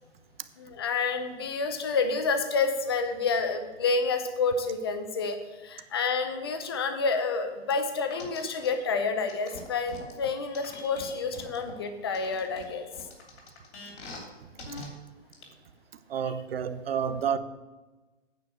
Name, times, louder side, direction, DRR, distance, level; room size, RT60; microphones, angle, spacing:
voice 1, 0.6-5.4 5.6-12.9 16.2-16.3, left 4 dB, 20° left, 0.6 m, -29 dB
sound 1, 8.1-8.7 9.3-11.7 12.1-14.3 14.6-14.9 15.3-15.4, left 3 dB, 60° left, 3.1 m, -43 dB
voice 2, 16.1-17.4, right 7 dB, 50° right, 0.7 m, -29 dB
9.1 x 5.2 x 7.8 m
hypercardioid pair, 165°, 37 cm